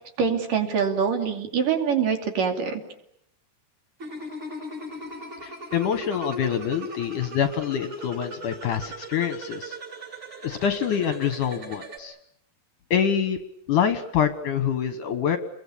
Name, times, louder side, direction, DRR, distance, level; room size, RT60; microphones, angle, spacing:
voice 1, 0.2-2.8, right 6 dB, 55° right, 4 dB, 4.2 m, -24 dB
sound 1, 4.0-12.0, equal, 30° right, 7.2 m, -38 dB
voice 2, 5.4-9.8 10.4-12.2 12.9-13.4 13.7-15.4, left 8 dB, 65° left, 9 dB, 2.3 m, -26 dB
29.5 x 22.0 x 8.6 m, 0.77 s
omnidirectional pair, 4.7 m